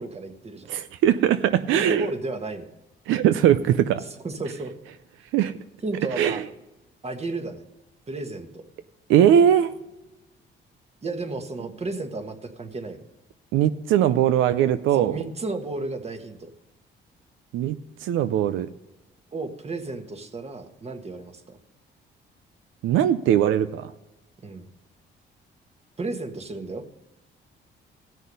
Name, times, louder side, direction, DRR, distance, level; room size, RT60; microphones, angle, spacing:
voice 1, 0.0-0.7 1.7-2.7 4.2-4.7 5.8-6.4 7.0-7.6 8.1-8.6 11.0-13.0 14.9-16.5 19.3-21.4 24.4-24.7 26.0-26.8, right 2 dB, 30° right, 6 dB, 1.5 m, -33 dB
voice 2, 0.7-2.1 3.1-4.0 5.3-5.5 6.2-6.4 9.1-9.7 13.5-15.2 17.5-18.7 22.8-23.9, right 10 dB, 90° right, 11 dB, 0.5 m, -20 dB
16.5 x 6.3 x 5.4 m, 0.96 s
cardioid pair, 90°, 20 cm